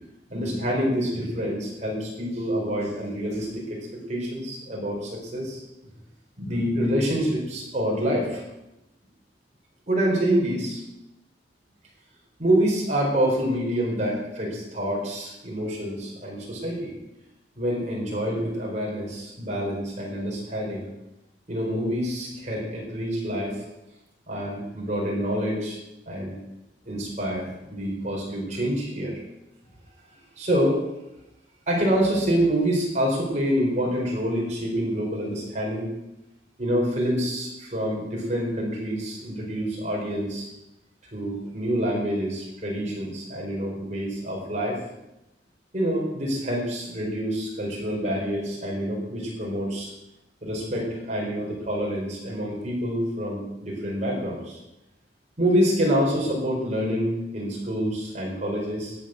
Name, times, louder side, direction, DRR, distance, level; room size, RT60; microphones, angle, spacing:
voice 1, 0.3-5.6 6.4-8.4 9.9-10.8 12.4-16.9 17.6-20.9 21.5-23.6 24.3-25.8 26.1-26.4 26.9-29.2 30.4-30.8 31.7-35.9 36.6-40.5 41.1-44.8 45.7-49.9 50.4-54.6 55.4-59.0, equal, 40° right, -3 dB, 4.5 m, -27 dB
13.5 x 9.3 x 6.3 m, 0.92 s
head